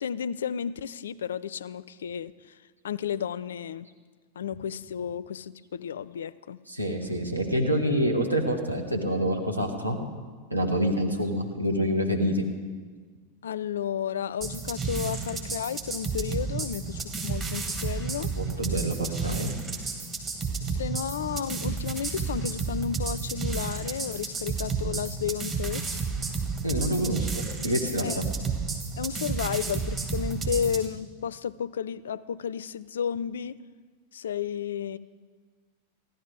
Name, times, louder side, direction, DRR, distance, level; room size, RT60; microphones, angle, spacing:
voice 1, 0.0-2.6 2.8-3.9 4.4-6.6 13.4-18.3 20.6-26.0 28.0-28.2 29.0-33.6 34.1-35.0, left 8 dB, 65° left, 19 dB, 0.4 m, -32 dB
voice 2, 6.7-10.0 10.5-12.5 18.4-19.5 26.6-28.2, equal, 85° right, 2 dB, 1.5 m, -27 dB
sound 1, 14.4-30.9, right 5 dB, 25° right, 1.9 m, -32 dB
15.0 x 11.0 x 4.9 m, 1.5 s
figure-of-eight pair, 90°, 0 cm